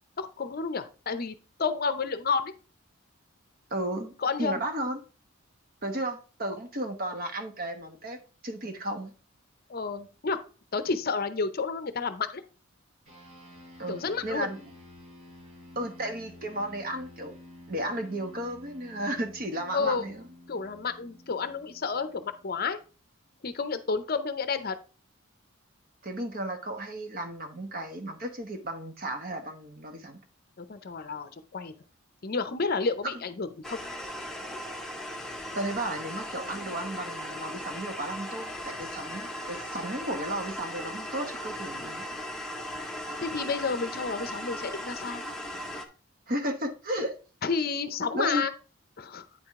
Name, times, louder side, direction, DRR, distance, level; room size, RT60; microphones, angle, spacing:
voice 1, 0.2-2.5 4.2-4.6 9.7-10.4 10.7-12.4 13.9-14.5 19.7-20.0 20.5-22.8 23.4-24.7 30.6-31.7 32.2-33.8 43.2-45.2 47.4-48.5 49.0-49.2, left 4 dB, 45° left, 11 dB, 0.6 m, -30 dB
voice 2, 3.7-4.1 4.4-5.0 5.8-8.2 8.4-9.1 13.8-14.6 15.8-17.3 17.7-20.2 26.0-30.2 35.5-42.0 46.3-47.1 48.1-48.4, right 1 dB, 45° right, 6 dB, 1.1 m, -34 dB
sound 1, 13.1-22.8, left 1 dB, 80° right, 4.6 m, -51 dB
sound 2, 33.6-45.8, equal, ahead, 0.7 m, -38 dB
9.0 x 4.9 x 3.6 m, 0.34 s
head